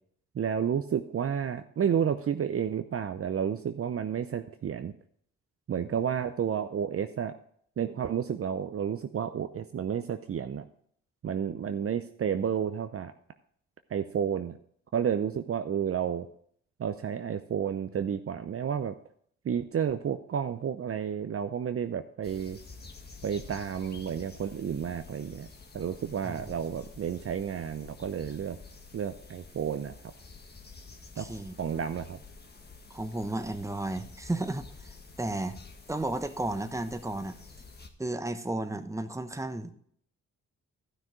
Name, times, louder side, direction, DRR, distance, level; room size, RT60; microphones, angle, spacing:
voice 1, 0.3-4.9 5.7-7.4 7.8-10.6 11.2-13.1 13.9-14.6 14.9-16.3 16.8-19.0 19.4-22.6 23.2-25.5 25.7-28.6 28.9-29.9 31.2-31.3 31.6-32.2, right 8 dB, 45° right, 9 dB, 0.7 m, -31 dB
sound 1, 22.2-37.9, left 4 dB, 30° left, 1.5 m, -49 dB
voice 2, 31.2-31.5 32.9-34.7 35.2-35.6 35.9-37.4 38.0-39.7, right 2 dB, 10° right, 9 dB, 1.1 m, -33 dB
12.0 x 6.0 x 5.1 m, 0.63 s
supercardioid pair, 50°, 34 cm